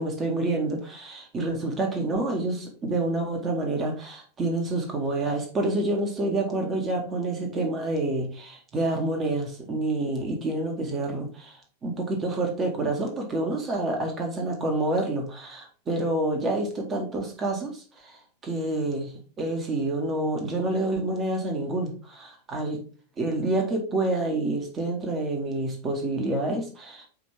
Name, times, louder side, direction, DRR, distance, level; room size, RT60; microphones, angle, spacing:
voice 1, 0.0-22.8 23.2-27.1, right 2 dB, 25° right, 3 dB, 1.9 m, -28 dB
8.9 x 3.4 x 3.6 m, 0.39 s
figure-of-eight pair, 90°, 0 cm